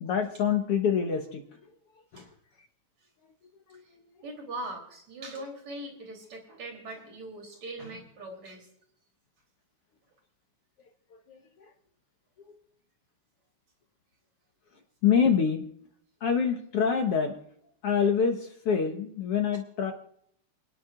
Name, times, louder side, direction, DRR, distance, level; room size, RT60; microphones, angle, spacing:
voice 1, 0.0-1.6 2.1-2.3 3.7-4.1 11.3-11.7 12.5-12.6 15.0-15.7 16.2-17.4 17.8-19.9, left 7 dB, 60° left, 4 dB, 1.8 m, -26 dB
voice 2, 4.2-8.7, right 1 dB, 60° right, 0 dB, 4.6 m, -41 dB
28.5 x 10.5 x 2.5 m, 0.69 s
omnidirectional pair, 3.4 m